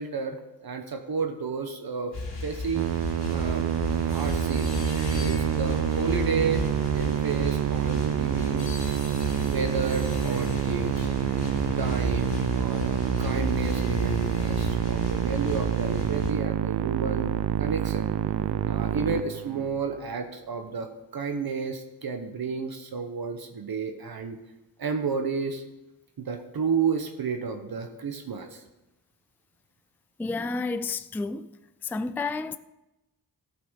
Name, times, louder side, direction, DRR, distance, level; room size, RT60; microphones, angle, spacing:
voice 1, 0.0-2.2 2.4-2.9 3.3-3.7 4.0-4.7 5.1-6.7 6.9-8.7 9.3-11.1 11.8-17.3 17.6-18.1 18.7-24.4 24.8-25.6 26.2-28.6, right 5 dB, 60° right, 1.1 m, -31 dB
sound 1, 2.1-16.3, left 3 dB, 70° left, 3.2 m, -33 dB
Musical instrument, 2.8-19.9, right 11 dB, 80° right, 0.6 m, -27 dB
voice 2, 5.1-5.4 30.2-31.5 31.8-32.6, left 3 dB, 5° left, 0.3 m, -31 dB
14.0 x 5.7 x 6.4 m
wide cardioid pair, 95°, 41 cm